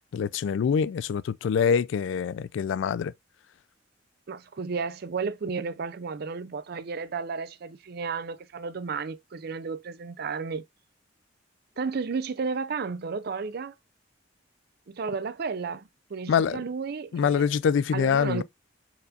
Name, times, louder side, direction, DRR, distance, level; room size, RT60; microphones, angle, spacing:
voice 1, 0.1-3.1 16.3-16.6 17.1-18.4, left 7 dB, 75° left, 0.3 m, -25 dB
voice 2, 4.3-10.6 11.8-13.7 14.9-17.5 17.9-18.4, right 5 dB, 55° right, 0.5 m, -33 dB
4.5 x 4.0 x 2.4 m
head